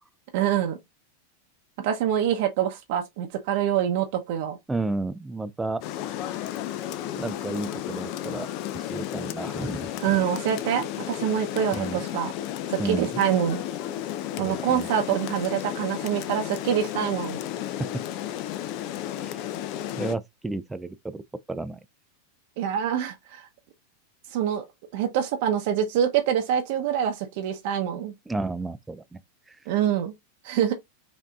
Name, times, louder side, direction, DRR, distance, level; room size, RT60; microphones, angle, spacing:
voice 1, 0.3-0.8 1.8-4.6 10.0-12.3 12.7-13.6 14.4-17.4 22.6-23.5 24.3-24.6 24.9-28.1 29.7-30.1 30.4-30.7, right 9 dB, 60° right, 0.8 m, -25 dB
voice 2, 4.7-5.8 6.4-6.7 7.2-8.5 8.7-9.9 11.7-12.0 12.8-13.2 14.4-14.9 19.2-19.4 20.0-21.2 21.5-21.8 28.3-29.2 29.5-29.6, right 3 dB, 10° right, 0.4 m, -32 dB
Rain, 5.8-20.1, left 12 dB, 50° left, 0.5 m, -33 dB
5.1 x 2.7 x 2.3 m
hypercardioid pair, 110°, 0 cm